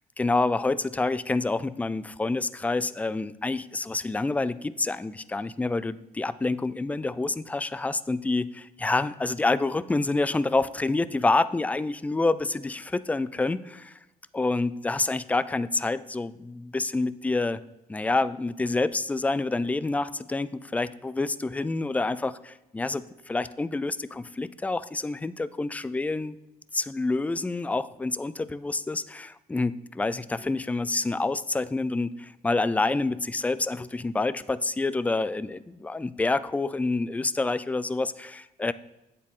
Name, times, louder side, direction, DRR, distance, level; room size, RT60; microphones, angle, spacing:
voice 1, 0.2-13.9 14.3-17.6 17.9-26.4 26.7-38.7, left 3 dB, 10° left, 16 dB, 0.3 m, -27 dB
8.7 x 8.1 x 3.7 m, 0.97 s
cardioid pair, 120°, 16 cm